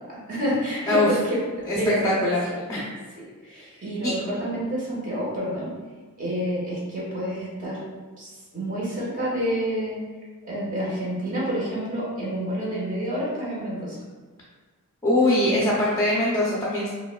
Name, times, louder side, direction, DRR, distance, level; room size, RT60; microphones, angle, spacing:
voice 1, 0.1-2.3 3.1-5.7 6.2-7.8 8.2-10.0 10.4-14.0, equal, 35° right, -7 dB, 1.1 m, -28 dB
voice 2, 2.0-2.4 2.7-2.9 4.0-4.1 15.0-16.9, left 1 dB, 15° left, -6 dB, 0.5 m, -22 dB
4.5 x 2.3 x 2.2 m, 1.4 s
head